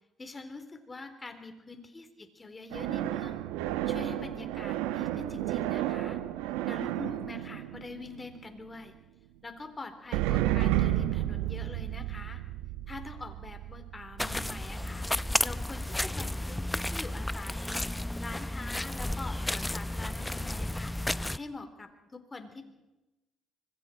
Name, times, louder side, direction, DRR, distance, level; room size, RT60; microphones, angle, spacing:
voice 1, 0.2-3.5 3.9-6.2 6.7-8.9 9.4-12.4 12.9-15.1 15.4-17.8 18.2-20.9 21.3-22.7, left 3 dB, 25° left, 7 dB, 4.0 m, -44 dB
sound 1, 2.7-8.7 10.1-15.4, right 14 dB, 80° right, 1.1 m, -32 dB
sound 2, 14.2-21.4, left 1 dB, 10° left, 0.7 m, -32 dB
25.0 x 23.5 x 4.5 m, 1.0 s
hypercardioid pair, 55°, 0 cm